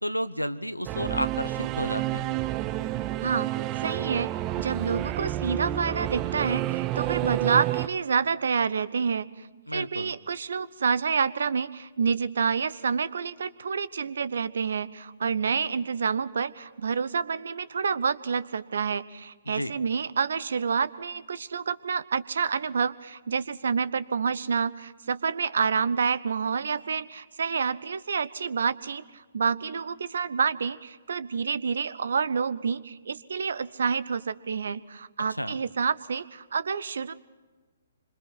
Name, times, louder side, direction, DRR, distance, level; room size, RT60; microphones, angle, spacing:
voice 1, 0.0-2.3 9.7-10.1 19.5-19.7 35.4-35.6, equal, 90° left, 14 dB, 1.0 m, -31 dB
Singing / Musical instrument, 0.9-7.9, right 14 dB, 25° right, 0.7 m, -29 dB
voice 2, 3.8-4.3 4.6-9.5 9.7-37.1, right 6 dB, 60° right, 18 dB, 0.9 m, -28 dB
27.0 x 26.0 x 4.1 m, 1.3 s
figure-of-eight pair, 125°, 0 cm